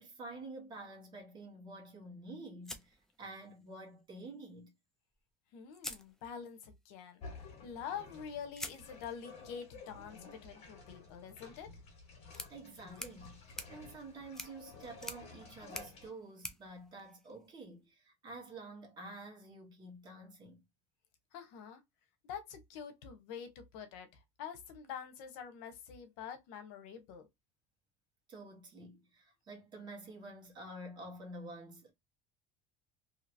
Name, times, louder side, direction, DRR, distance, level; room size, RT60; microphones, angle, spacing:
voice 1, 0.0-4.7 12.5-20.6 28.3-31.9, right 2 dB, 30° right, 1.4 m, -49 dB
sound 1, 2.6-3.8 5.1-5.2 5.7-6.7 8.5-17.7, left 1 dB, 5° left, 0.4 m, -50 dB
voice 2, 5.5-11.7 21.3-21.8 22.2-27.3, left 7 dB, 75° left, 0.9 m, -46 dB
sound 2, 7.2-16.1, left 3 dB, 45° left, 1.5 m, -53 dB
2.8 x 2.8 x 2.6 m
cardioid pair, 140°, 15 cm